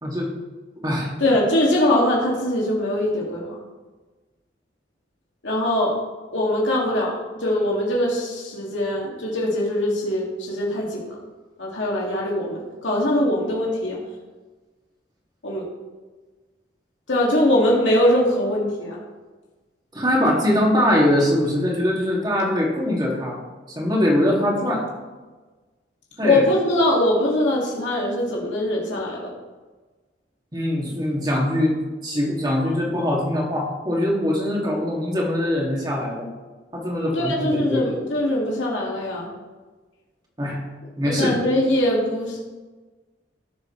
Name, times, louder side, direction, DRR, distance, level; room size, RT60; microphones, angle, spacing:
voice 1, 0.0-0.3 0.8-1.1 19.9-23.4 23.7-24.8 26.2-26.4 30.5-31.8 32.0-36.3 36.7-38.0 40.4-40.6 41.0-41.4, left 1 dB, 20° right, -2 dB, 2.4 m, -22 dB
voice 2, 1.2-3.6 5.4-5.9 6.3-11.2 11.6-14.0 15.4-15.6 17.1-19.0 26.2-29.3 37.1-39.3 41.0-42.4, left 1 dB, 85° left, -3 dB, 2.4 m, -22 dB
17.5 x 7.2 x 3.3 m, 1.3 s
head